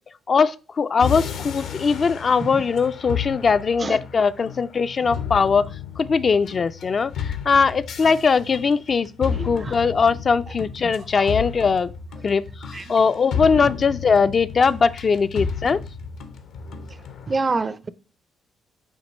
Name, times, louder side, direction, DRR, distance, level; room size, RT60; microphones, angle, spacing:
voice 1, 0.3-5.7 6.0-11.9 12.2-15.8, left 5 dB, 40° left, 0.3 m, -20 dB
sound 1, 1.0-17.4, left 7 dB, 80° left, 0.9 m, -33 dB
voice 2, 10.8-11.2 12.7-12.8 13.6-13.7 17.3-17.9, right 3 dB, 30° right, 0.4 m, -26 dB
7.2 x 2.9 x 5.2 m
cardioid pair, 90°, 0 cm